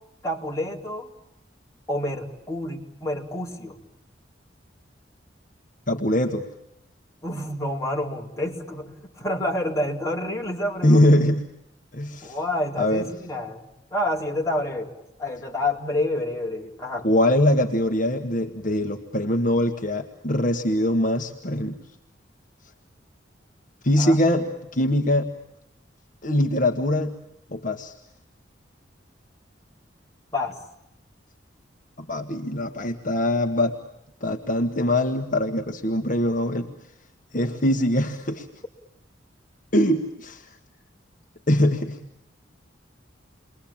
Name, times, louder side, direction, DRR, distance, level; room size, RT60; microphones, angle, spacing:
voice 1, 0.2-1.1 1.9-3.8 7.2-8.9 9.2-11.1 12.2-17.1 24.0-24.2 30.3-30.6, left 1 dB, 15° left, -2 dB, 4.1 m, -28 dB
voice 2, 5.9-6.4 10.8-11.4 11.9-12.4 12.8-13.1 17.0-21.8 23.8-25.3 26.2-27.2 27.5-27.9 32.0-33.7 34.2-36.7 37.3-38.5 39.7-40.4 41.5-42.0, left 1 dB, 45° left, 3 dB, 1.7 m, -22 dB
29.5 x 22.0 x 8.9 m, 0.82 s
head